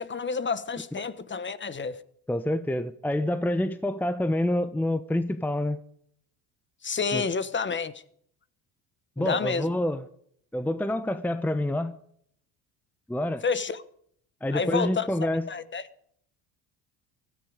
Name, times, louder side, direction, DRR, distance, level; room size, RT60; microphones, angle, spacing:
voice 1, 0.0-2.0 6.8-7.9 9.2-9.7 13.4-13.8 14.5-15.1 15.5-15.8, left 5 dB, 25° left, 1.3 m, -29 dB
voice 2, 2.3-5.8 7.1-7.2 9.2-10.1 10.5-12.0 13.1-13.4 14.4-15.5, left 1 dB, 5° left, 0.9 m, -27 dB
16.0 x 14.0 x 5.1 m
supercardioid pair, 85°, 43 cm